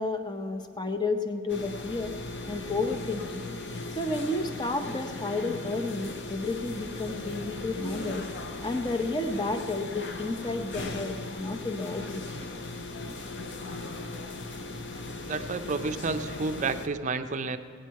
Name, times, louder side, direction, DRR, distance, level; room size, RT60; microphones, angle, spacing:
voice 1, 0.0-2.2 2.5-3.4 4.0-8.3 8.6-12.3, left 2 dB, 20° left, 7 dB, 0.7 m, -31 dB
sound 1, 1.5-16.9, left 2 dB, 60° left, 0.8 m, -38 dB
voice 2, 15.3-17.6, right 4 dB, 40° right, 9 dB, 0.5 m, -30 dB
18.0 x 9.2 x 4.6 m, 2.4 s
head